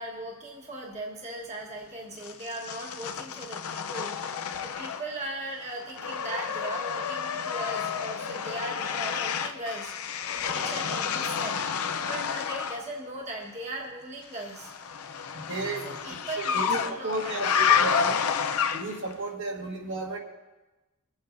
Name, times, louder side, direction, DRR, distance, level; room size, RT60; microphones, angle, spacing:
voice 1, 0.0-9.9 10.3-11.6 12.0-14.7 15.8-17.4, right 1 dB, 30° right, -1 dB, 1.3 m, -38 dB
sound 1, 2.2-5.3 5.6-12.8 14.4-19.1, left 7 dB, 75° left, 0.6 m, -30 dB
voice 2, 15.3-18.2 18.7-20.2, right 2 dB, 60° right, 0 dB, 1.5 m, -34 dB
22.5 x 8.1 x 2.6 m, 1.1 s
head